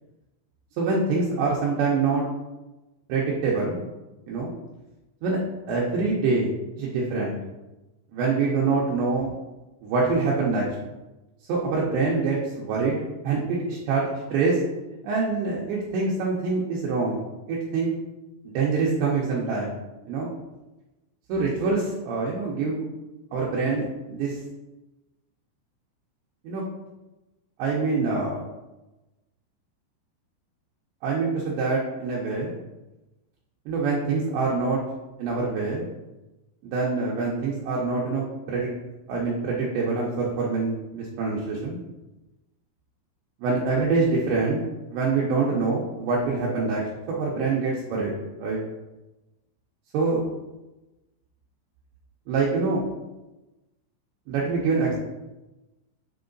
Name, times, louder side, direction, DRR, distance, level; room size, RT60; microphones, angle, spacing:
voice 1, 0.8-2.2 3.1-3.8 4.3-4.5 5.2-5.4 5.7-6.5 6.8-7.4 8.1-9.3 9.8-10.8 11.5-14.6 15.0-17.2 17.5-18.0 18.4-19.8 20.1-20.3 21.3-22.9 23.3-24.4 26.4-26.6 27.6-28.4 31.0-32.6 33.7-34.8 35.2-35.9 36.6-38.7 39.1-41.8 43.4-44.6 44.9-46.8 47.1-48.1 48.4-48.6 49.9-50.2 52.3-52.8 54.3-55.0, right 4 dB, 75° right, -4 dB, 2.7 m, -25 dB
7.7 x 3.1 x 3.9 m, 1.1 s
omnidirectional pair, 5.6 m